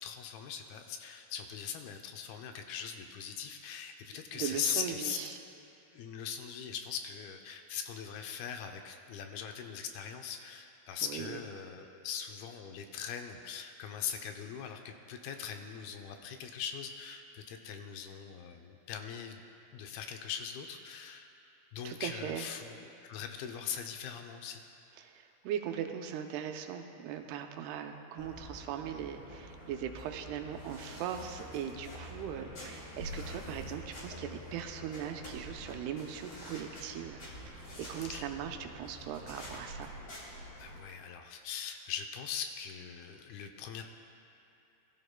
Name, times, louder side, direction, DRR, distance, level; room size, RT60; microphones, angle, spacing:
voice 1, 0.0-5.2 5.9-19.4 19.7-21.3 21.7-22.7 23.0-24.6 38.1-38.3 40.6-43.8, left 8 dB, 80° left, 5 dB, 2.5 m, -40 dB
voice 2, 4.3-5.4 11.0-11.4 21.8-22.5 25.0-37.2 37.5-37.6 37.9-39.9, right 9 dB, 85° right, 5 dB, 2.7 m, -39 dB
sound 1, 28.2-40.8, equal, 40° left, 3.9 m, -47 dB
21.0 x 13.0 x 2.2 m, 2.9 s
omnidirectional pair, 4.6 m